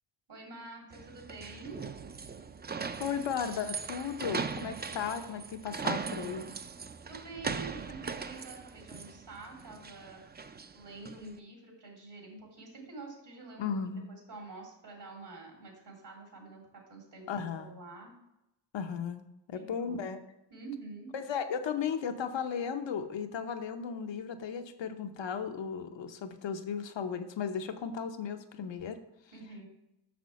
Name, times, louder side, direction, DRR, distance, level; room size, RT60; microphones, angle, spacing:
voice 1, 0.3-1.8 7.1-18.2 19.5-20.1 20.5-21.1 29.3-29.7, right 3 dB, 70° right, 0 dB, 3.0 m, -47 dB
sound 1, 0.9-11.3, right 5 dB, 25° right, 0.4 m, -39 dB
voice 2, 3.0-6.5 13.6-14.1 17.3-17.7 18.7-20.2 21.1-29.0, left 7 dB, 80° left, 8 dB, 0.8 m, -35 dB
6.2 x 5.9 x 4.2 m, 0.89 s
cardioid pair, 50°, 44 cm